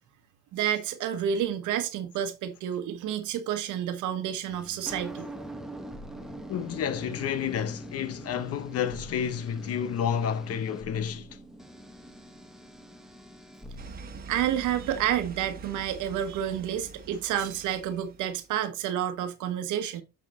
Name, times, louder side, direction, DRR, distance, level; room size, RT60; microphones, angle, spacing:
voice 1, 0.5-5.3 14.3-20.0, right 10 dB, 75° right, 1.2 m, -29 dB
sound 1, 4.5-13.9, right 1 dB, ahead, 1.0 m, -43 dB
voice 2, 6.5-11.3, left 8 dB, 50° left, 0.8 m, -30 dB
sound 2, 13.8-18.6, right 4 dB, 30° right, 1.3 m, -45 dB
7.7 x 5.7 x 3.0 m
cardioid pair, 115°, 31 cm